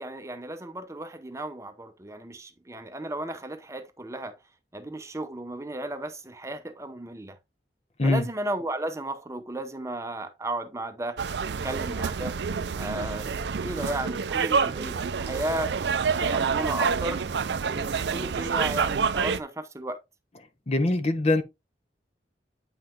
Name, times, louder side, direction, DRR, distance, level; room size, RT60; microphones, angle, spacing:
voice 1, 0.0-4.4 4.7-7.4 8.0-11.2 11.6-12.4 12.8-15.7 16.2-17.2 17.6-20.0, right 1 dB, 15° right, 0.7 m, -34 dB
sound 1, 11.2-19.4, right 5 dB, 75° right, 0.5 m, -28 dB
voice 2, 20.7-21.4, left 2 dB, 35° left, 0.8 m, -22 dB
8.8 x 5.6 x 2.8 m
head